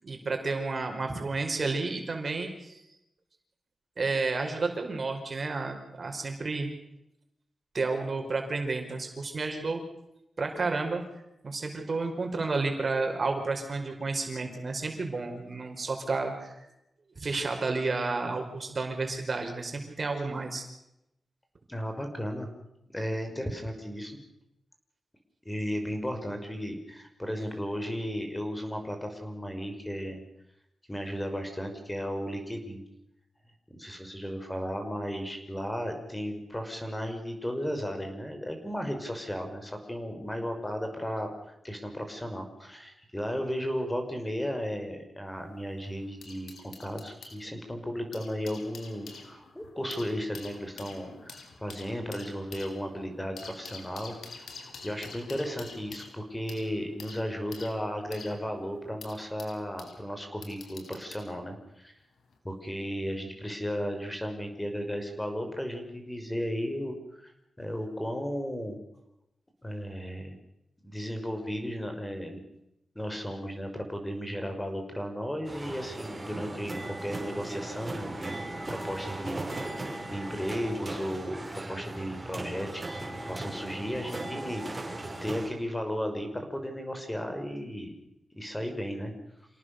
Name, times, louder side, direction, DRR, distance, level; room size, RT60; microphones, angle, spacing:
voice 1, 0.0-2.8 4.0-6.7 7.7-9.8 10.4-11.0 11.4-16.6 17.1-20.7, right 3 dB, 50° right, 4 dB, 5.2 m, -31 dB
voice 2, 21.7-22.5 22.9-24.2 25.5-30.2 30.9-32.8 33.7-54.4 54.8-61.9 62.4-67.2 67.6-68.8 69.6-70.4 70.8-72.4 73.0-78.4 78.7-87.9 88.3-89.1, equal, 10° left, 5 dB, 5.6 m, -35 dB
sound 1, 45.3-47.4 47.9-60.0 60.4-61.3 62.2-62.4, left 4 dB, 85° left, 4.7 m, -48 dB
sound 2, 75.4-85.5, right 2 dB, 25° right, 6.2 m, -38 dB
28.0 x 18.0 x 6.8 m, 0.85 s
cardioid pair, 65°, 0 cm